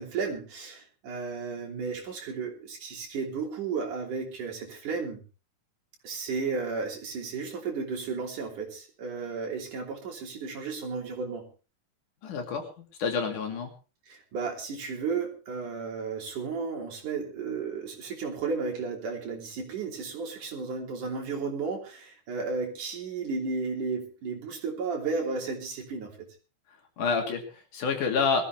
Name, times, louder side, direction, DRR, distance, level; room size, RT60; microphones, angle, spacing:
voice 1, 0.0-5.2 6.0-11.5 14.1-26.1, right 4 dB, 80° right, 1 dB, 4.7 m, -33 dB
voice 2, 12.2-12.7 13.0-13.7 27.0-28.4, left 5 dB, 80° left, 3 dB, 4.1 m, -28 dB
21.5 x 14.0 x 3.3 m, 0.34 s
omnidirectional pair, 3.6 m